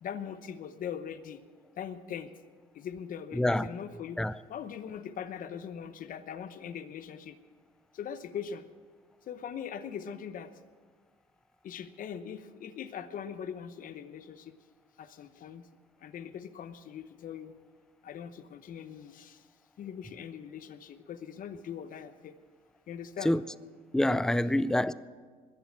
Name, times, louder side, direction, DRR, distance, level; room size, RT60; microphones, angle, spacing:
voice 1, 0.0-1.4 1.8-2.3 2.7-4.2 4.5-7.4 7.9-8.7 9.2-10.5 11.6-14.6 15.0-15.7 16.0-17.6 18.0-19.5 19.8-22.3 22.9-23.3, left 8 dB, 55° left, 0.9 m, -41 dB
voice 2, 3.4-3.7 4.2-4.3 23.2-23.4 23.9-24.9, left 1 dB, 5° left, 0.4 m, -26 dB
20.5 x 7.3 x 7.4 m
cardioid pair, 110°, 17 cm